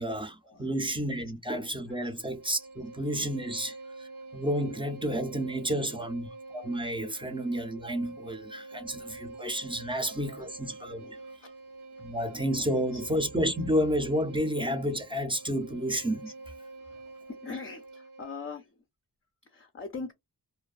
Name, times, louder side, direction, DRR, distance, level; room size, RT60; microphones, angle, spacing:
voice 1, 0.0-11.0 12.0-16.3, equal, 15° right, 0.5 m, -31 dB
Bowed string instrument, 1.8-18.5, right 3 dB, 80° right, 0.9 m, -47 dB
voice 2, 10.9-11.5 12.9-13.0 16.9-17.0 17.4-18.7 19.5-20.1, left 4 dB, 35° left, 0.4 m, -41 dB
2.6 x 2.2 x 2.3 m
wide cardioid pair, 80°, 39 cm